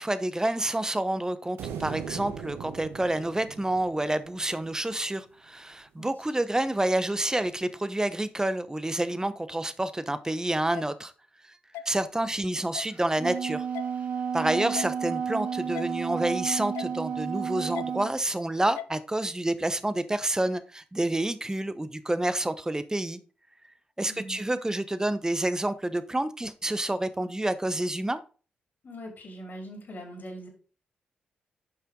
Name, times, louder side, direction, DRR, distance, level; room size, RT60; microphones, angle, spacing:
voice 1, 0.0-11.1 11.8-13.6 14.3-23.2 24.0-28.2, right 1 dB, 15° right, 1.0 m, -28 dB
sound 1, 1.6-5.0, right 8 dB, 80° right, 0.9 m, -40 dB
sound 2, 10.7-10.9 11.7-11.9 12.7-12.9 13.7-13.9 14.7-14.9 15.7-15.9 16.7-16.9 17.7-17.9 18.8-18.9, left 11 dB, 85° left, 0.4 m, -37 dB
Wind instrument woodwind instrument, 13.0-18.1, right 7 dB, 50° right, 2.1 m, -32 dB
voice 2, 24.1-24.4 28.8-30.5, equal, 55° left, 4.1 m, -41 dB
8.5 x 5.6 x 3.9 m
supercardioid pair, 45°, 4 cm